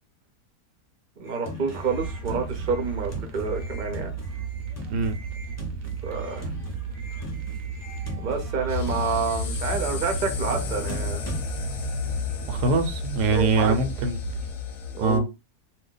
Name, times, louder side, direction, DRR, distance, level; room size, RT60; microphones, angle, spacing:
sound 1, 1.2-11.4, equal, 15° left, 0.6 m, -40 dB
voice 1, 1.2-4.1 6.0-6.5 8.2-11.2 13.3-13.7 14.9-15.3, right 4 dB, 45° right, 0.6 m, -28 dB
sound 2, 1.9-14.5, right 6 dB, 70° right, 0.9 m, -34 dB
sound 3, 8.7-15.2, left 8 dB, 65° left, 0.9 m, -32 dB
voice 2, 12.4-14.2 15.0-15.2, right 3 dB, 85° right, 1.2 m, -23 dB
2.7 x 2.2 x 3.8 m
omnidirectional pair, 1.7 m